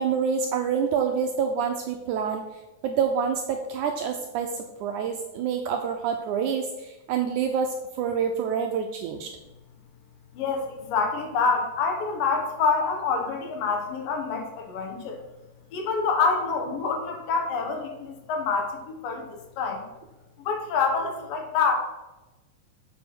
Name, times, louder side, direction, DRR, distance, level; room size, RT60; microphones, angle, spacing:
voice 1, 0.0-2.4 2.8-9.3, right 6 dB, 80° right, 4 dB, 1.8 m, -27 dB
voice 2, 10.3-15.2 15.7-19.8 20.4-21.7, left 5 dB, 80° left, 3 dB, 2.9 m, -26 dB
7.1 x 5.6 x 6.0 m, 1.0 s
omnidirectional pair, 3.9 m